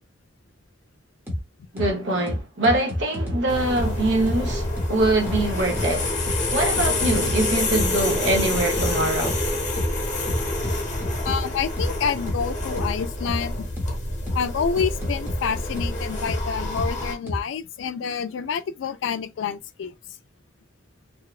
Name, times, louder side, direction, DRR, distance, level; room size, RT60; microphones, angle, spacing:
sound 1, 1.3-1.4 1.8-1.9 2.3-3.4 3.8-3.9 4.3-4.4 4.8-4.9 5.3-5.4 5.8-5.9 6.3-6.4 6.8-7.4 7.8-7.9 8.3-8.4 8.8-8.9 9.3-9.4 9.8-9.9 10.3-11.4 11.8-11.9 12.3-12.4 12.8-12.9 13.3-13.4 13.8-13.9 14.3-14.4 14.8-15.4 15.8-15.9 16.3-16.4 16.8-16.9 17.3-17.4, left 1 dB, 10° right, 0.8 m, -27 dB
voice 1, 1.7-6.1 6.5-9.4, right 2 dB, 65° right, 0.7 m, -23 dB
sound 2, 3.5-17.1, left 2 dB, 40° left, 0.9 m, -27 dB
voice 2, 11.2-13.7 14.3-19.9, left 7 dB, 75° left, 0.3 m, -28 dB
2.7 x 2.1 x 2.3 m
head